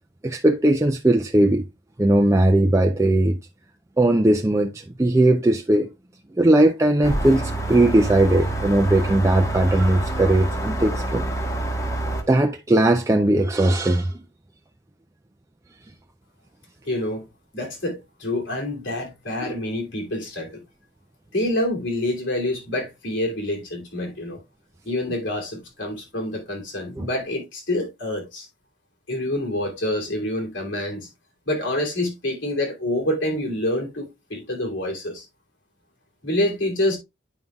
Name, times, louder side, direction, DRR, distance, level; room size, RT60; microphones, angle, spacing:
voice 1, 0.2-1.7 2.0-3.4 4.0-4.7 5.0-5.9 6.3-11.2 12.3-14.1 19.4-19.5 27.0-27.1, right 1 dB, 15° right, 0.4 m, -18 dB
sound 1, 7.0-12.2, right 2 dB, 15° left, 1.1 m, -27 dB
voice 2, 16.9-17.2 17.5-20.6 21.3-24.4 24.8-28.5 29.1-31.1 31.5-35.2 36.2-37.0, left 1 dB, 90° left, 2.7 m, -27 dB
9.2 x 5.5 x 2.3 m
head